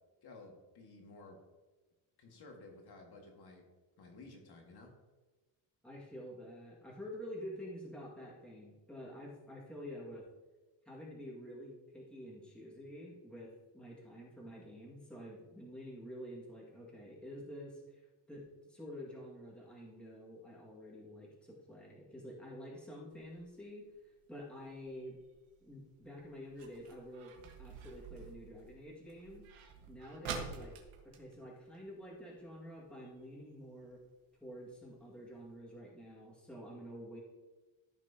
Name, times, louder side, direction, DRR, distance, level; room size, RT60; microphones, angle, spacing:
voice 1, 0.2-1.4 2.2-3.6 4.0-4.9, left 2 dB, 50° left, 2 dB, 2.0 m, -54 dB
voice 2, 5.8-10.3 10.9-18.0 18.3-23.8 24.3-25.2 25.6-29.4 29.9-30.7 31.0-34.0 34.4-37.2, equal, ahead, -5 dB, 2.0 m, -48 dB
sound 1, 23.1-32.4 32.7-32.8 33.1-33.4 33.9-34.0 34.5-34.6 34.9-35.0 35.4-35.5, right 6 dB, 80° right, 1.6 m, -49 dB
14.0 x 6.0 x 2.9 m, 1.2 s
cardioid pair, 135°, 47 cm